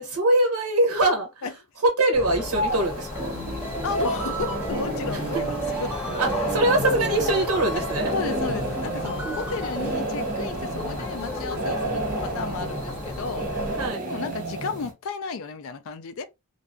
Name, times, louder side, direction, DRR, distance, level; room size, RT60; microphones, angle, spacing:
voice 1, 0.0-1.5 1.8-3.3 5.1-5.4 6.2-8.1 9.2-9.5 13.8-14.1, right 2 dB, 80° right, 0.6 m, -23 dB
sound 1, 2.1-13.9, left 3 dB, 10° left, 1.1 m, -34 dB
sound 2, 2.5-14.9, right 2 dB, 40° right, 0.6 m, -32 dB
sound 3, 3.2-10.0, right 2 dB, 5° right, 0.8 m, -34 dB
voice 2, 3.8-5.5 5.8-5.9 7.7-7.8 8.1-13.5 14.1-16.3, left 4 dB, 60° left, 0.3 m, -33 dB
2.5 x 2.3 x 2.5 m
head